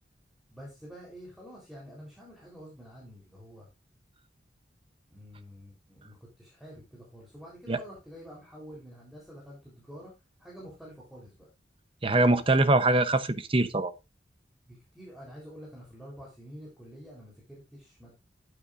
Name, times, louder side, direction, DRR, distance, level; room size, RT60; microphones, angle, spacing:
voice 1, 0.5-3.7 5.1-10.1 10.4-11.5 14.7-18.2, equal, ahead, 3.9 m, -48 dB
voice 2, 12.0-13.9, right 2 dB, 30° right, 0.9 m, -23 dB
13.0 x 8.6 x 2.6 m
head